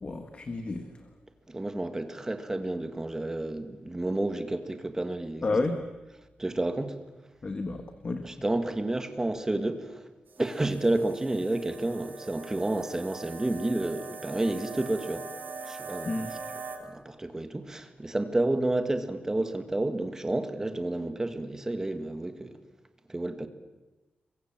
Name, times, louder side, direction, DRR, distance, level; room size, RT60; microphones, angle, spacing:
voice 1, 0.0-1.1 5.4-5.8 7.4-8.3 16.0-16.3, left 3 dB, 35° left, 1.6 m, -31 dB
voice 2, 1.5-5.5 6.4-7.0 8.2-10.0 10.4-15.3 15.6-16.1 16.8-22.6 23.1-23.5, right 2 dB, 15° right, 1.8 m, -30 dB
sound 1, 10.3-16.8, right 4 dB, 75° right, 4.0 m, -42 dB
29.5 x 23.0 x 7.5 m
wide cardioid pair, 170°, 4 cm